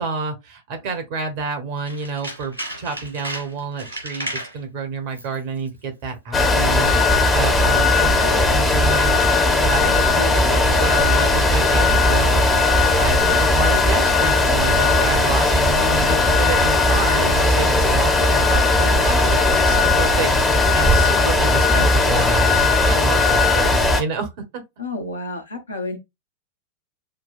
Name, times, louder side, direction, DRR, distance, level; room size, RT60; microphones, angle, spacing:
voice 1, 0.0-9.2 9.6-12.4 13.0-24.6, right 4 dB, 50° right, 1.3 m, -29 dB
Tools, 1.8-4.6 5.1-5.4 5.7-5.8, right 1 dB, 85° right, 2.9 m, -33 dB
sound 1, 6.3-24.0, left 2 dB, 15° left, 0.9 m, -17 dB
voice 2, 24.8-26.0, left 2 dB, 80° left, 1.1 m, -30 dB
6.5 x 2.3 x 2.5 m
figure-of-eight pair, 90°, 0 cm